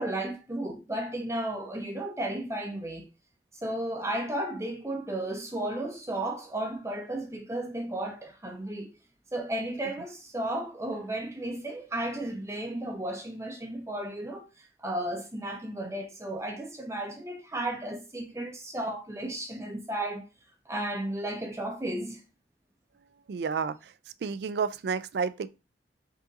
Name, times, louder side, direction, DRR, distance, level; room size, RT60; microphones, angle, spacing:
voice 1, 0.0-3.1 3.5-8.9 9.3-20.2 20.7-22.2, right 1 dB, 15° right, 0.7 m, -34 dB
voice 2, 23.3-23.8 24.2-25.5, right 5 dB, 65° right, 0.3 m, -30 dB
5.3 x 2.5 x 3.8 m
head